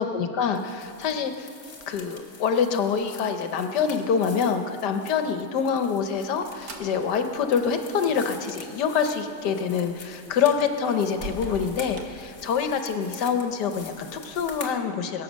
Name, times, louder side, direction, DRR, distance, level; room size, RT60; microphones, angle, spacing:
voice 1, 0.0-1.5 1.9-15.2, left 6 dB, 80° left, 7 dB, 1.5 m, -26 dB
sound 1, 0.5-14.7, left 4 dB, 45° left, 1.5 m, -46 dB
sound 2, 5.7-13.0, right 1 dB, 55° right, 1.5 m, -45 dB
21.5 x 7.5 x 6.3 m, 2.9 s
omnidirectional pair, 1.8 m